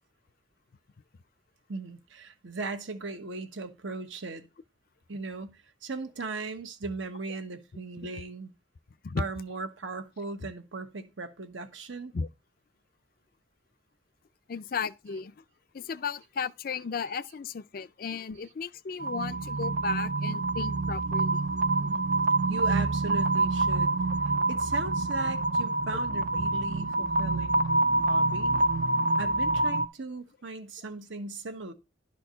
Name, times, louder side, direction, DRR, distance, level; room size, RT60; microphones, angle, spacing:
voice 1, 1.7-4.5 5.1-8.5 9.2-12.1 17.0-17.1 21.8-22.1 22.5-24.0 24.5-27.7 28.0-28.5 29.2-31.7, right 3 dB, 80° right, 1.1 m, -38 dB
voice 2, 14.5-15.3 15.7-21.4, left 5 dB, 50° left, 0.4 m, -35 dB
sound 1, 19.0-29.9, right 2 dB, 40° right, 0.4 m, -26 dB
11.5 x 4.5 x 5.6 m
head